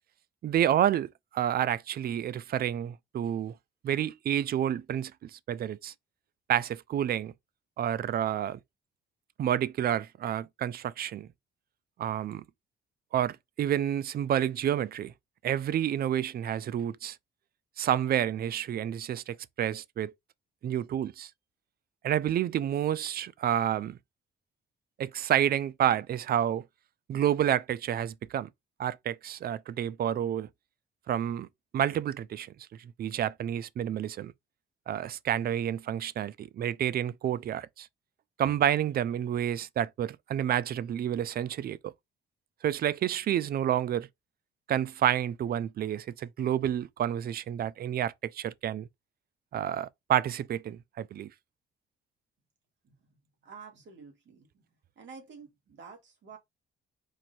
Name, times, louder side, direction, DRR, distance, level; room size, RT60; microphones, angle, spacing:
voice 1, 0.4-3.5 3.8-5.9 6.5-7.3 7.8-8.6 9.4-11.3 12.0-12.4 13.1-15.1 15.4-17.2 17.8-20.1 20.6-21.3 22.0-24.0 25.0-26.6 27.1-28.5 28.8-30.5 31.1-31.5 31.7-32.5 32.8-34.3 34.9-37.9 38.4-41.9 42.6-44.1 44.7-48.9 49.5-51.3, right 10 dB, 50° right, 0.4 m, -29 dB
voice 2, 53.4-54.5 55.0-56.4, right 5 dB, 70° right, 2.3 m, -49 dB
4.7 x 2.7 x 4.2 m
cardioid pair, 90°, 20 cm